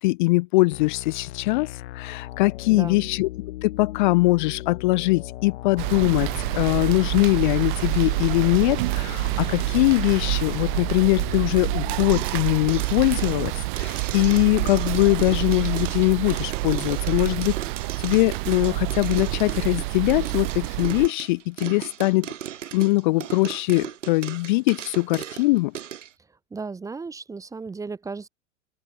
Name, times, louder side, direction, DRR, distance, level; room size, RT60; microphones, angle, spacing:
voice 1, 0.0-3.3 3.6-17.5 18.0-22.3 22.7-25.7, left 22 dB, 35° left, 0.7 m, -22 dB
sound 1, 0.7-12.0, left 15 dB, 55° left, 5.2 m, -38 dB
voice 2, 2.7-3.1 26.5-28.3, right 4 dB, 10° right, 1.0 m, -35 dB
sound 2, 5.8-21.1, right 24 dB, 40° right, 0.8 m, -27 dB
sound 3, 11.9-26.1, right 10 dB, 65° right, 2.0 m, -37 dB
open air
figure-of-eight pair, 100°, 40 cm